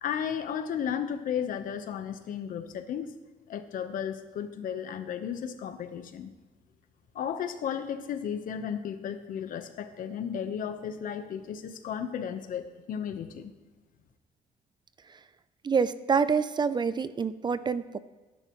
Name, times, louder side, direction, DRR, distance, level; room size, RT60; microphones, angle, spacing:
voice 1, 0.0-3.1 3.5-6.3 7.1-13.5, left 8 dB, 70° left, 9 dB, 1.2 m, -34 dB
voice 2, 15.6-18.0, right 5 dB, 30° right, 14 dB, 0.5 m, -26 dB
19.0 x 10.5 x 3.2 m, 1.2 s
cardioid pair, 110°, 15 cm